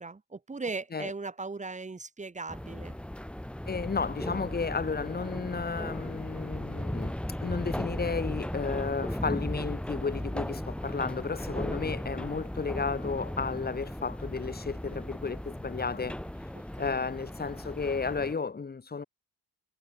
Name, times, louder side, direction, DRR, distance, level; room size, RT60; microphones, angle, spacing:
voice 1, 0.0-3.0 16.5-17.1, right 3 dB, 20° right, 7.3 m, -38 dB
sound 1, 2.5-18.3, left 1 dB, 5° left, 3.9 m, -36 dB
voice 2, 3.7-16.2 16.8-19.0, left 5 dB, 25° left, 5.2 m, -33 dB
cardioid pair, 140°, 35 cm